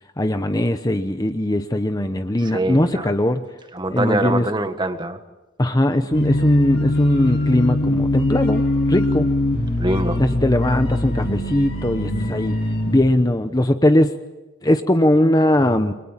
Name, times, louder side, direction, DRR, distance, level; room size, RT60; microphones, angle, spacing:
voice 1, 0.2-3.4 3.9-4.5 5.6-9.3 10.2-12.6 12.9-14.2 14.6-15.9, left 1 dB, 20° left, 8 dB, 0.9 m, -19 dB
voice 2, 2.5-3.1 3.7-5.2 9.8-10.2, right 1 dB, 20° right, 8 dB, 1.6 m, -23 dB
sound 1, 6.1-13.0, left 1 dB, 50° left, 7.0 m, -22 dB
29.5 x 23.0 x 7.5 m, 1.1 s
head